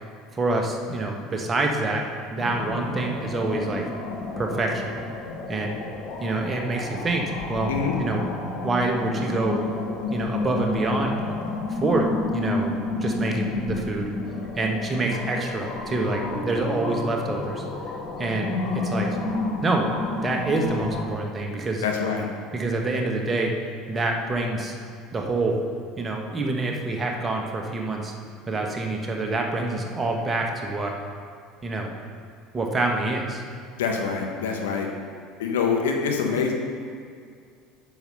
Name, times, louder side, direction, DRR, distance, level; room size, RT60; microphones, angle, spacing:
voice 1, 0.3-2.0 2.3-3.8 4.4-5.0 5.5-5.8 6.2-7.7 8.0-8.3 8.6-9.6 10.1-11.4 11.7-14.1 14.5-17.6 18.2-19.1 19.6-19.9 20.2-21.8 22.5-23.5 23.9-24.8 25.1-25.6 26.0-28.1 28.5-30.9 31.6-31.9 32.5-33.4, right 2 dB, 25° right, 1 dB, 1.5 m, -26 dB
sound 1, 2.4-21.0, left 3 dB, 50° left, 1.7 m, -31 dB
voice 2, 21.8-22.2 33.8-34.9 35.4-36.5, left 5 dB, 70° left, 1 dB, 1.2 m, -25 dB
8.7 x 6.4 x 5.4 m, 2.2 s
figure-of-eight pair, 65°, 0 cm